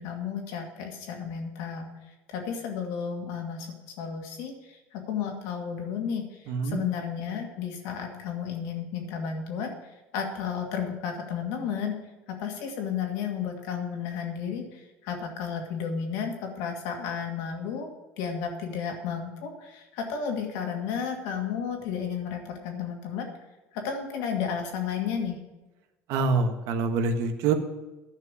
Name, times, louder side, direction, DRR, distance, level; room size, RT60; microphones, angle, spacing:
voice 1, 0.0-1.9 2.3-9.7 10.1-11.9 12.3-23.3 23.7-25.4, left 7 dB, 80° left, 2 dB, 2.3 m, -33 dB
voice 2, 6.5-6.8 26.1-27.5, right 4 dB, 70° right, 7 dB, 1.4 m, -25 dB
10.5 x 5.8 x 8.4 m, 1.1 s
cardioid pair, 120°, 6 cm